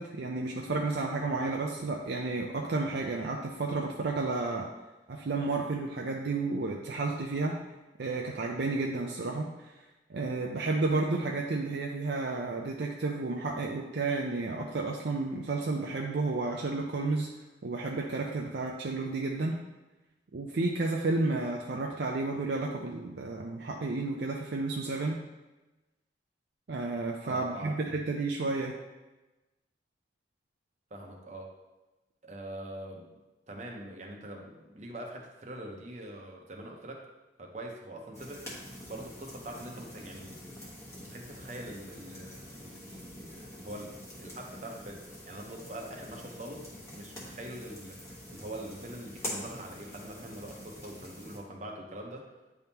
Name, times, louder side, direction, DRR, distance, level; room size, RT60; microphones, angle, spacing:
voice 1, 0.0-4.7 5.1-7.6 8.0-9.8 10.1-17.3 17.6-19.6 20.3-25.2 26.7-28.7, right 3 dB, 65° right, 0 dB, 0.5 m, -31 dB
voice 2, 27.2-27.8 30.9-31.5 32.2-33.2 33.5-37.1 37.4-38.5 38.9-40.5 41.0-43.9 44.2-52.3, right 1 dB, 40° right, 1 dB, 0.9 m, -43 dB
sound 1, 38.1-51.4, left 1 dB, 15° left, 1.2 m, -45 dB
9.2 x 3.5 x 2.8 m, 1.1 s
head